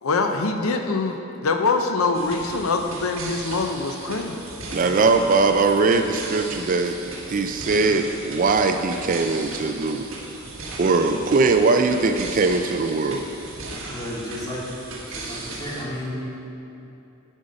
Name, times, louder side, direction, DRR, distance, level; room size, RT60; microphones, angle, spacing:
voice 1, 0.0-4.4, left 3 dB, 80° left, 5 dB, 0.6 m, -24 dB
sound 1, 2.1-15.8, right 2 dB, 70° right, 1.5 m, -37 dB
voice 2, 4.7-7.0 7.3-10.1 10.8-13.2, right 3 dB, 40° right, 6 dB, 0.4 m, -20 dB
voice 3, 13.9-14.6 15.1-16.2, left 1 dB, 20° left, -7 dB, 2.3 m, -32 dB
11.5 x 5.5 x 5.3 m, 2.8 s
head